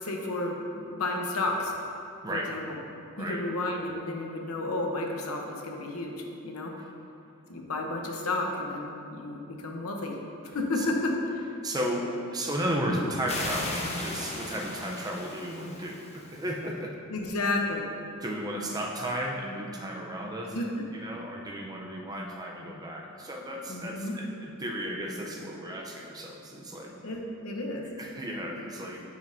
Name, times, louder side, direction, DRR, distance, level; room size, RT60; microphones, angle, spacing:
voice 1, 0.0-1.7 2.3-2.8 3.2-6.7 7.5-10.2 10.5-11.5 17.1-17.9 20.5-20.7 23.7-24.1 27.0-27.8, left 2 dB, 80° left, 1 dB, 0.9 m, -32 dB
voice 2, 2.2-2.5 3.2-3.4 6.8-6.9 10.5-10.9 11.6-16.9 18.2-26.9 28.0-29.1, equal, 20° right, -1 dB, 0.6 m, -34 dB
sound 1, 13.3-16.6, left 2 dB, 30° left, 0.8 m, -37 dB
10.5 x 5.2 x 2.7 m, 2.6 s
head